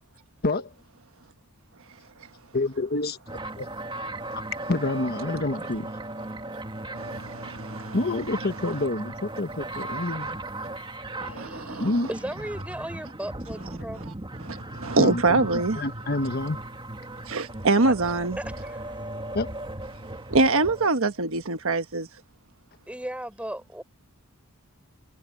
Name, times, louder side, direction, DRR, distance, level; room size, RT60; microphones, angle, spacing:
voice 1, 0.4-0.7 2.5-3.7 4.7-5.9 7.9-10.4 11.2-11.5 11.8-12.1 15.0-16.6 19.3-19.5, left 2 dB, 45° left, 1.3 m, -28 dB
sound 1, 3.3-20.9, right 2 dB, 25° right, 2.0 m, -37 dB
voice 2, 7.0-7.9 11.3-11.9 14.4-15.8 17.3-18.4 20.3-22.1, right 3 dB, 65° right, 1.4 m, -24 dB
voice 3, 11.2-14.1 18.4-18.8 22.9-23.8, right 1 dB, 5° right, 5.0 m, -36 dB
head